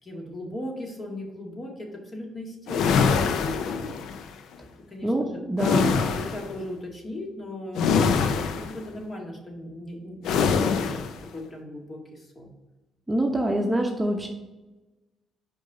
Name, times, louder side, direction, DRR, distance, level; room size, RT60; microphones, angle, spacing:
voice 1, 0.0-4.0 4.9-10.9 11.3-12.5, left 1 dB, 35° left, 0 dB, 1.9 m, -38 dB
sound 1, 2.7-4.3 5.6-6.5 7.7-8.8 10.2-11.2, left 5 dB, 80° left, 0.5 m, -24 dB
voice 2, 5.0-5.9 13.1-14.3, right 1 dB, 15° right, 1 dB, 0.9 m, -25 dB
5.2 x 5.2 x 4.9 m, 1.1 s
cardioid pair, 90°, 0 cm